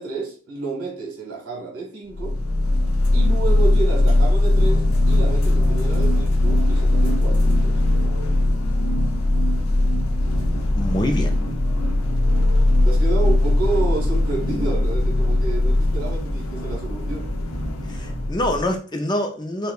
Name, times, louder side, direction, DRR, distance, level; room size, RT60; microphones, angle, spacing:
voice 1, 0.0-2.3 3.1-7.8 12.8-17.3, right 4 dB, 80° right, 1.2 m, -30 dB
sound 1, 2.1-18.7, left 1 dB, 75° left, 0.6 m, -19 dB
voice 2, 10.8-11.3 17.9-19.7, left 1 dB, 20° left, 0.4 m, -25 dB
4.6 x 2.1 x 2.4 m
head